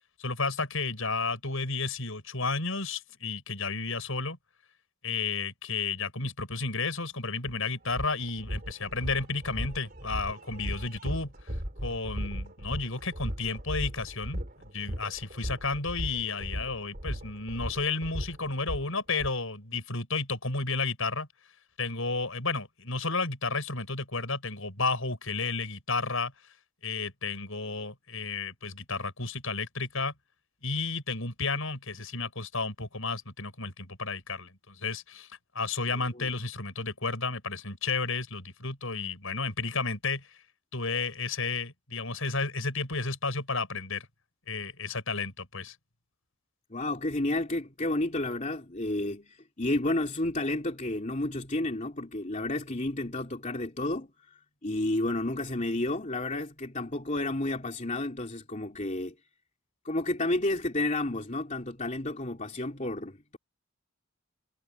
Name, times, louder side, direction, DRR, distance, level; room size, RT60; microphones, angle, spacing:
voice 1, 0.2-4.4 5.0-11.5 11.8-21.3 21.8-26.3 26.8-30.1 30.6-40.3 40.7-44.1 44.5-45.7, left 4 dB, 65° left, 6.8 m, -32 dB
sound 1, 7.4-7.5 7.9-19.3, equal, 40° right, 4.1 m, -37 dB
voice 2, 35.9-36.3 46.7-54.1 54.6-59.1 59.8-63.4, left 2 dB, 35° left, 3.2 m, -31 dB
head